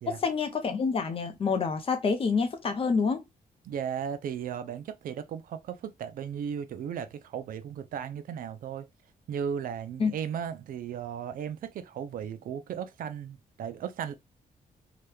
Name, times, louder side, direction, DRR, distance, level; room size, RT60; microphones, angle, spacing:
voice 1, 0.1-3.2 10.0-10.1, left 5 dB, 40° left, 0.7 m, -27 dB
voice 2, 3.6-8.9 9.3-14.1, right 8 dB, 70° right, 0.5 m, -36 dB
2.9 x 2.3 x 3.3 m
cardioid pair, 140°, 15 cm